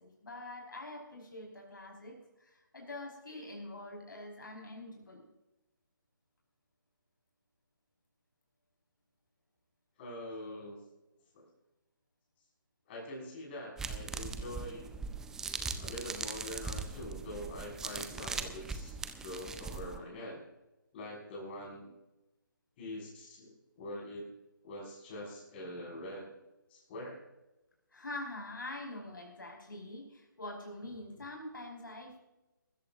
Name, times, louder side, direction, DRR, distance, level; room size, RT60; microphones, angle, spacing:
voice 1, 0.0-5.3 27.9-32.2, left 2 dB, 70° left, 0 dB, 5.2 m, -45 dB
voice 2, 10.0-10.8 11.3-11.5 12.9-14.9 15.8-19.0 19.2-20.4 20.9-21.9 22.8-24.3 24.6-26.3 26.7-27.2, left 1 dB, 30° left, -2 dB, 6.1 m, -44 dB
sound 1, 13.8-20.0, right 4 dB, 5° right, 0.5 m, -40 dB
23.0 x 13.5 x 2.7 m, 0.99 s
figure-of-eight pair, 145°, 11 cm